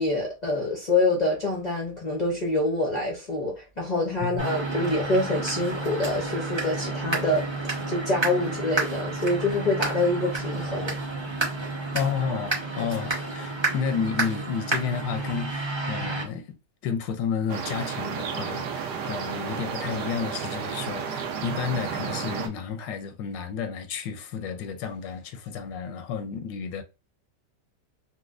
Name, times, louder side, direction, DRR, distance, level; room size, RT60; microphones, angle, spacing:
voice 1, 0.0-11.0, left 2 dB, 70° left, 0.4 m, -26 dB
sound 1, 4.4-16.2, right 3 dB, 30° right, 0.5 m, -30 dB
voice 2, 11.9-16.6 16.8-26.8, left 6 dB, 90° left, 1.3 m, -31 dB
sound 2, 17.5-22.5, right 6 dB, 75° right, 1.2 m, -32 dB
4.2 x 2.0 x 2.4 m
omnidirectional pair, 1.9 m